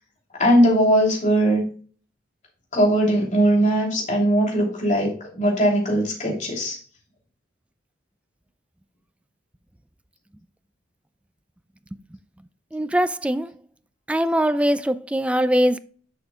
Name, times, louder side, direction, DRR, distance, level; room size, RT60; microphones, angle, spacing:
voice 1, 0.4-1.7 2.7-6.8, equal, 40° left, 3.1 m, -19 dB
voice 2, 12.7-13.5 14.1-15.8, equal, 5° right, 0.3 m, -21 dB
10.5 x 5.8 x 2.3 m
head